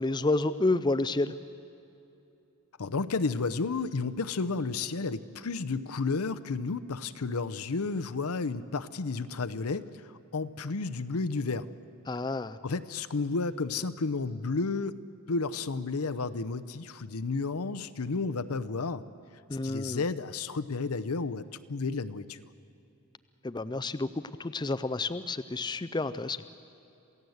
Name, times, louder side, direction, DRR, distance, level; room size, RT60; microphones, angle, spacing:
voice 1, 0.0-1.3 12.1-12.6 19.5-20.0 23.4-24.1 24.4-26.4, left 2 dB, 20° left, 12 dB, 0.4 m, -29 dB
voice 2, 2.8-11.7 12.6-15.0 15.3-19.0 19.6-22.4, left 4 dB, 85° left, 11 dB, 0.7 m, -32 dB
27.5 x 16.0 x 7.9 m, 2.7 s
head